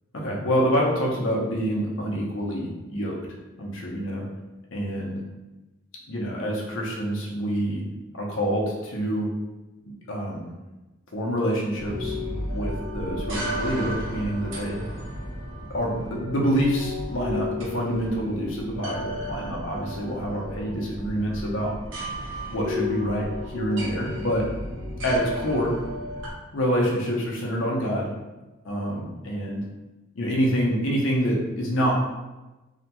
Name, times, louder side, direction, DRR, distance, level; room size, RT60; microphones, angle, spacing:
voice 1, 0.1-3.2 3.6-4.2 4.7-5.2 6.1-7.8 8.1-9.3 10.1-10.5 11.1-12.2 12.5-14.8 15.7-21.7 22.5-23.3 23.5-24.4 25.0-25.7 26.5-28.1 28.6-29.6 30.2-31.9, equal, 65° left, -3 dB, 0.6 m, -26 dB
sound 1, 11.8-26.3, left 1 dB, 60° right, 0.8 m, -33 dB
2.8 x 2.2 x 2.8 m, 1.1 s
head